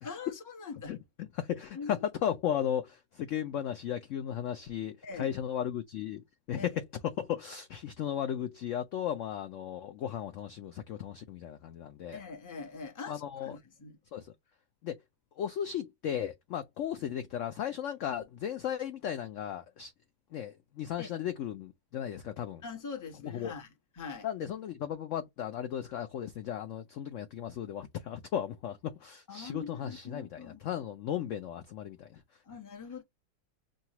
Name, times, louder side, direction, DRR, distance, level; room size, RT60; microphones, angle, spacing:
voice 1, 0.0-1.0 1.7-2.0 5.0-5.3 6.5-6.7 12.1-14.0 21.0-21.1 22.6-23.7 23.9-24.3 29.3-30.6 32.4-33.0, left 5 dB, 15° left, 0.6 m, -43 dB
voice 2, 0.9-6.2 6.5-12.2 13.1-13.6 14.1-14.3 14.8-15.0 15.4-19.9 20.3-22.6 23.2-23.5 24.2-32.2, left 9 dB, 75° left, 0.7 m, -35 dB
6.4 x 2.3 x 2.9 m
omnidirectional pair, 1.8 m